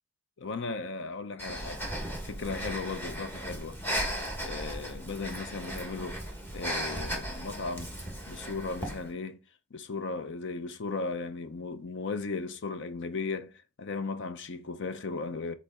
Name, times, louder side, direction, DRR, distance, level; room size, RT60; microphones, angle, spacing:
voice 1, 0.4-1.8 2.2-6.2 6.5-7.9 8.3-9.4 9.7-15.5, left 4 dB, 55° left, 0.6 m, -36 dB
Breathing, 1.4-9.1, right 1 dB, 10° left, 1.3 m, -36 dB
7.0 x 4.1 x 3.6 m
head